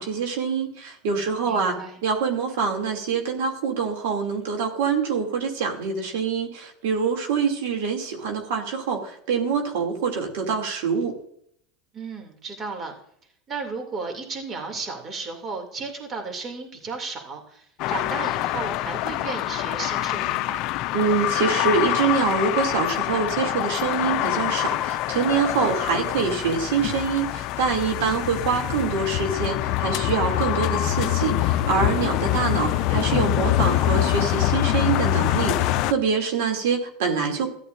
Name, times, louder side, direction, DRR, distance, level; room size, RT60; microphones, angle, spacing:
voice 1, 0.0-11.1 20.9-37.5, right 5 dB, 75° right, 2 dB, 2.7 m, -25 dB
voice 2, 1.4-2.0 11.9-12.9 13.5-20.7 28.0-28.2 32.3-32.4, right 4 dB, 30° right, 2 dB, 2.7 m, -34 dB
sound 1, 17.8-35.9, left 15 dB, 55° left, 0.5 m, -25 dB
14.5 x 11.5 x 2.6 m, 0.66 s
supercardioid pair, 120°, 0 cm